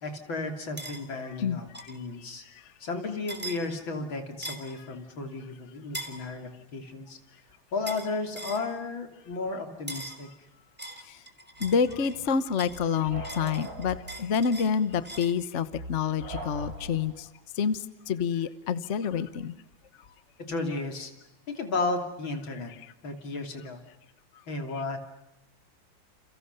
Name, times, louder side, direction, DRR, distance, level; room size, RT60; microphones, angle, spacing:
voice 1, 0.0-2.4 2.8-7.2 7.7-10.3 20.5-21.1 21.5-22.7 23.0-23.8 24.5-25.0, left 3 dB, 85° left, 5 dB, 3.8 m, -33 dB
sound 1, 0.8-1.0 1.7-2.0 3.3-3.6 4.4-4.7 5.9-6.2 7.9-8.1 8.4-8.7 9.9-10.2 10.8-12.2 12.6-15.4, right 1 dB, 5° right, 3.0 m, -40 dB
voice 2, 1.4-1.9 11.6-17.3 17.6-19.5, left 6 dB, 45° left, 13 dB, 1.3 m, -28 dB
sound 2, 11.6-17.3, right 2 dB, 65° right, 5.4 m, -42 dB
29.5 x 29.5 x 6.8 m, 0.91 s
omnidirectional pair, 2.1 m